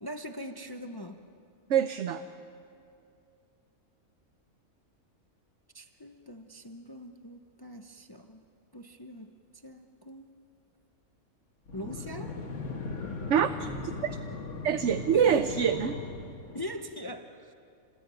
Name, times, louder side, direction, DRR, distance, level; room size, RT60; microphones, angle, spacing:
voice 1, 0.0-1.3 5.7-8.4 8.7-9.3 9.6-10.3 11.7-12.3 15.1-15.5 16.5-17.5, left 1 dB, 20° left, 0.8 m, -41 dB
voice 2, 1.7-2.2 13.3-13.7 14.0-14.2 14.6-16.0, right 8 dB, 60° right, 1.0 m, -25 dB
sound 1, 11.7-16.9, left 3 dB, 55° left, 1.9 m, -38 dB
27.5 x 19.5 x 9.2 m
omnidirectional pair, 1.5 m